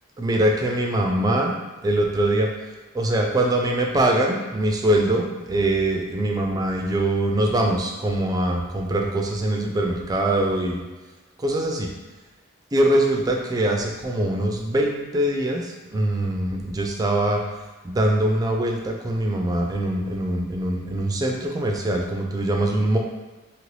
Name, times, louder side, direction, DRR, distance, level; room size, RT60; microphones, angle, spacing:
voice 1, 0.2-1.6 1.8-2.5 2.9-10.8 11.4-11.9 12.7-17.4 17.8-23.0, right 1 dB, 20° right, 1 dB, 0.3 m, -23 dB
3.0 x 2.6 x 3.2 m, 1.2 s
head